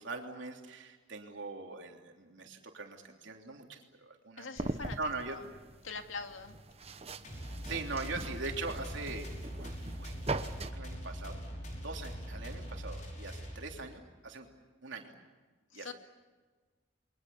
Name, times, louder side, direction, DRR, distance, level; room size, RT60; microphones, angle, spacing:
voice 1, 0.0-4.5 5.0-5.4 7.7-10.1 10.7-11.4 11.8-14.5 14.8-15.1 15.7-15.9, right 3 dB, 70° right, 2 dB, 3.3 m, -41 dB
voice 2, 4.4-5.0 5.3-5.4 5.8-6.5 15.7-15.9, left 4 dB, 90° left, 6 dB, 2.2 m, -42 dB
sound 1, 4.6-10.7, right 2 dB, 30° right, 1.0 m, -41 dB
sound 2, 7.2-14.0, equal, 40° left, 5.6 m, -42 dB
29.5 x 23.0 x 7.1 m, 1.4 s
head